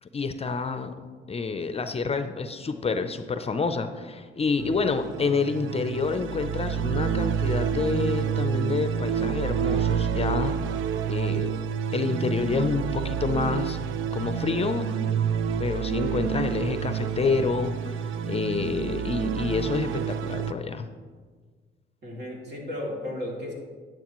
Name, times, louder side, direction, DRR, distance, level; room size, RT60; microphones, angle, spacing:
voice 1, 0.0-0.9 1.3-10.5 11.0-11.5 11.9-13.8 14.1-14.9 15.6-18.0 18.2-20.9, left 4 dB, 30° left, 9 dB, 0.5 m, -28 dB
sound 1, 4.6-20.5, right 8 dB, 85° right, 0.4 m, -28 dB
voice 2, 22.0-23.5, left 1 dB, 60° right, -2 dB, 2.7 m, -34 dB
9.9 x 8.9 x 3.0 m, 1.5 s
cardioid pair, 90°, 20 cm